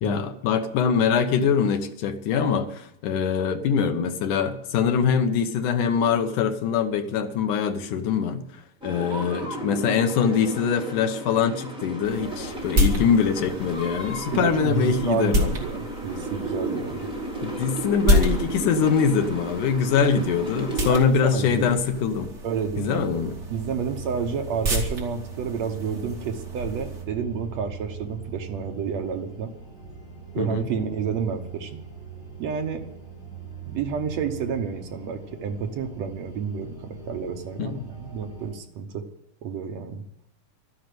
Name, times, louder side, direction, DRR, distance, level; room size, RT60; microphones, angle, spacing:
voice 1, 0.0-8.4 8.8-15.5 17.4-22.3 22.8-23.4 30.4-30.7 37.6-37.8, left 6 dB, 80° left, 7 dB, 2.6 m, -23 dB
sound 1, 8.8-20.9, right 2 dB, ahead, 2.8 m, -34 dB
sound 2, 12.0-27.0, equal, 30° right, 3.1 m, -30 dB
voice 2, 14.3-17.1 20.9-21.7 22.4-23.1 23.5-29.5 30.3-31.8 32.4-32.8 33.7-39.0 39.4-40.0, right 6 dB, 65° right, 5 dB, 2.1 m, -30 dB
sound 3, 22.9-38.5, right 6 dB, 15° left, 8.1 m, -41 dB
13.0 x 10.0 x 9.3 m, 0.81 s
omnidirectional pair, 3.6 m